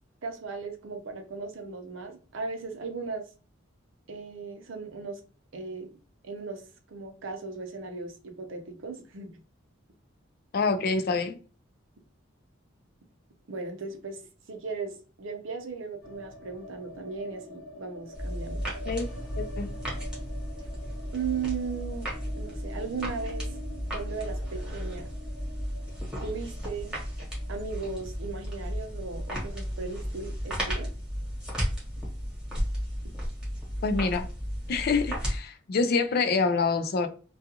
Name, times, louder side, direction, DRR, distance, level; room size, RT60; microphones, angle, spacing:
voice 1, 0.2-3.2 4.1-5.2 5.5-5.9 6.2-6.6 6.9-9.4 13.5-14.2 14.5-18.6 21.1-22.1 22.4-23.5 23.9-25.1 26.2-26.9 27.5-30.9, right 4 dB, 65° right, 0.6 m, -37 dB
voice 2, 10.5-11.4 18.9-19.1 19.4-19.7 33.8-34.3 34.7-37.1, left 4 dB, 50° left, 0.4 m, -26 dB
sound 1, 16.0-32.1 32.4-32.5 32.8-33.5, equal, 90° left, 0.9 m, -46 dB
sound 2, 18.1-35.4, equal, 5° right, 1.1 m, -34 dB
2.3 x 2.3 x 2.8 m
head